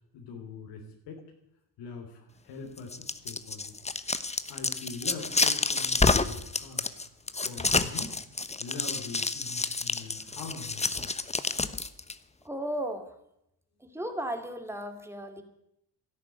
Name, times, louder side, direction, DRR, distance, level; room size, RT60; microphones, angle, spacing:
voice 1, 0.1-1.2 1.8-3.7 4.5-6.9 7.4-8.1 8.6-11.1, left 4 dB, 90° left, 0 dB, 3.3 m, -43 dB
sound 1, 2.8-12.1, left 3 dB, 15° left, 1.0 m, -29 dB
voice 2, 12.4-13.1 13.9-15.4, right 1 dB, 5° right, 6 dB, 2.7 m, -34 dB
13.0 x 11.5 x 9.1 m, 0.78 s
cardioid pair, 85°, 40 cm